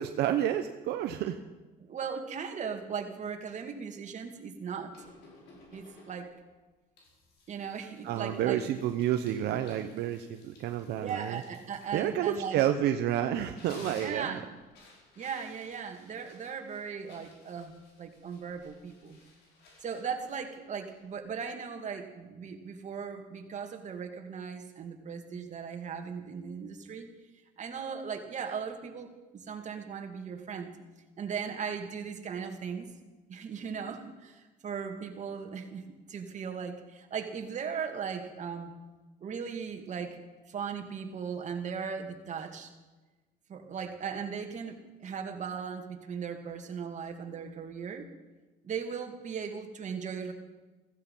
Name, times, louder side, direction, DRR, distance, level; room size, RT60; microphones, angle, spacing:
voice 1, 0.0-1.4 8.0-11.4 11.9-14.4, right 11 dB, 80° right, 7 dB, 0.9 m, -30 dB
voice 2, 1.8-5.0 5.7-6.3 7.5-8.6 11.0-12.6 13.9-14.6 15.2-17.7 18.0-19.2 19.8-27.1 27.6-30.7 31.2-32.9 33.3-38.7 39.2-40.2 40.5-42.7 43.5-48.1 48.6-50.3, right 6 dB, 45° right, 5 dB, 2.3 m, -38 dB
sound 1, 4.9-6.5 7.0-13.0 13.4-21.2, left 2 dB, 80° left, 5.4 m, -56 dB
15.5 x 15.0 x 5.6 m, 1.2 s
cardioid pair, 110°, 17 cm